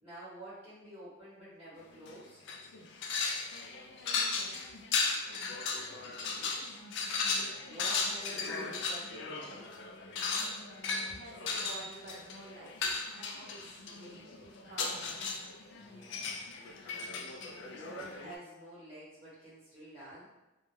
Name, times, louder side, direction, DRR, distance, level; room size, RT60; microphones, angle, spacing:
voice 1, 0.0-2.4 5.7-6.8 7.6-9.8 15.8-16.4 17.6-20.3, right 1 dB, 10° right, -10 dB, 0.8 m, -49 dB
sound 1, 1.9-2.2 2.5-18.4, left 4 dB, 60° left, 0.3 m, -36 dB
voice 2, 3.9-4.6 6.2-7.2 7.7-7.9 8.4-8.6 10.9-15.1, right 1 dB, 65° right, -8 dB, 0.5 m, -51 dB
2.2 x 2.1 x 3.1 m, 1.0 s
head